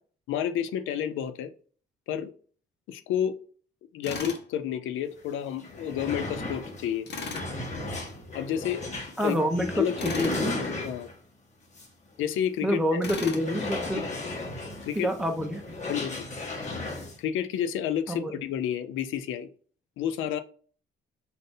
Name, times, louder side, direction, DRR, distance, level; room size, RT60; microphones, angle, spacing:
voice 1, 0.3-1.5 2.1-2.3 2.9-3.4 3.9-7.1 8.3-8.8 9.2-9.4 9.8-10.2 10.8-11.1 12.2-13.3 14.0-14.1 14.8-15.1 15.9-16.2 17.2-19.5 20.0-20.4, left 9 dB, 85° left, 12 dB, 0.4 m, -30 dB
Tools, 4.0-4.4 7.1-7.5 10.0-10.4 13.0-13.5, left 4 dB, 60° left, 1.0 m, -36 dB
sound 1, 5.2-5.3 5.5-11.3 11.7-11.9 12.3-12.4 13.3-17.2, left 2 dB, 35° left, 1.3 m, -35 dB
voice 2, 9.2-10.5 12.6-14.0 14.9-15.6 18.1-18.3, equal, 5° right, 3 dB, 0.8 m, -27 dB
3.7 x 2.6 x 3.7 m, 0.44 s
cardioid pair, 90°, 20 cm